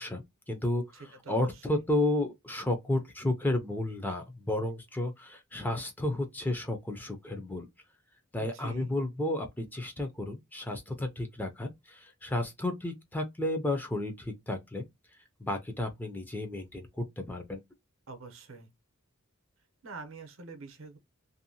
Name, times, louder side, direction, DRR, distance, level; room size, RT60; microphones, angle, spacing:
voice 1, 0.0-7.7 8.3-14.8 15.4-17.6, left 1 dB, 10° left, 0.4 m, -32 dB
voice 2, 8.4-8.9 18.1-18.7 19.8-21.0, right 3 dB, 65° right, 0.7 m, -45 dB
2.6 x 2.1 x 2.7 m
head